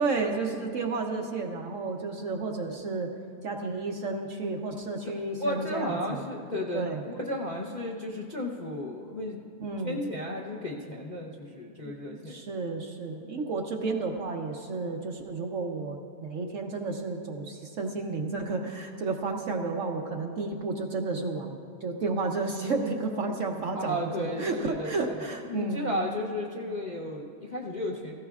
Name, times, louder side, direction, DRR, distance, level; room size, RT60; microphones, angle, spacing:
voice 1, 0.0-3.1 3.4-6.2 6.7-7.0 9.6-10.0 11.8-25.9, right 3 dB, 60° right, 2 dB, 0.9 m, -32 dB
voice 2, 5.4-9.4 9.8-12.4 23.7-24.9 25.2-28.1, left 1 dB, 40° left, -3 dB, 0.6 m, -34 dB
16.0 x 15.5 x 2.4 m, 2.3 s
omnidirectional pair, 1.8 m